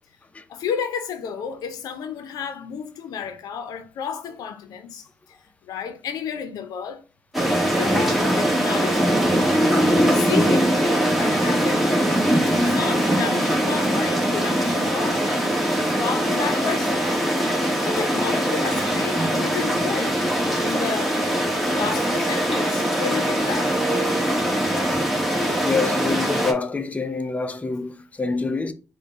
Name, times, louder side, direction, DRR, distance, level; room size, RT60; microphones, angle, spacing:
voice 1, 0.5-5.1 5.7-7.0 7.7-9.2 9.9-10.8 11.1-11.9 12.3-15.6 16.0-17.1 17.8-21.2 21.7-23.8, left 7 dB, 85° left, 0.5 m, -31 dB
sound 1, 7.3-26.5, right 1 dB, ahead, 1.2 m, -21 dB
voice 2, 25.6-28.7, left 4 dB, 20° left, 0.6 m, -26 dB
3.9 x 2.2 x 4.4 m
supercardioid pair, 60°, 6 cm